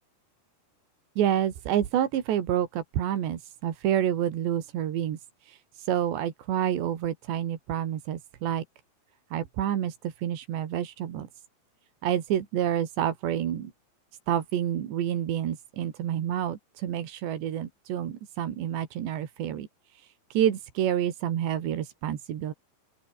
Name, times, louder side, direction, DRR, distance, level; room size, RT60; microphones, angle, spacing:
voice 1, 1.2-8.6 9.3-11.3 12.0-13.7 14.3-19.7 19.9-22.5, right 10 dB, 85° right, 4.5 m, -28 dB
open air
omnidirectional pair, 4.9 m